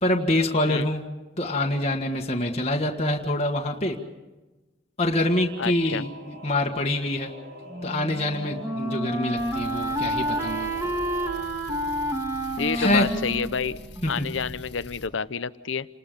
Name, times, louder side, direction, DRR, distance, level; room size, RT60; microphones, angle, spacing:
voice 1, 0.0-1.0 1.4-4.0 5.0-7.3 7.8-10.7 12.7-13.1 14.0-14.2, left 1 dB, 30° left, 0 dB, 1.7 m, -25 dB
Singing / Musical instrument, 5.1-11.4, left 1 dB, 60° right, 4.0 m, -43 dB
voice 2, 5.6-6.1 12.6-13.8 14.1-15.9, left 5 dB, 75° left, 15 dB, 0.7 m, -29 dB
Wind instrument woodwind instrument, 7.7-14.6, right 1 dB, 15° right, 1.7 m, -30 dB
sound 1, 9.4-15.1, left 1 dB, 55° left, 1.8 m, -44 dB
29.0 x 20.0 x 5.3 m, 1.1 s
head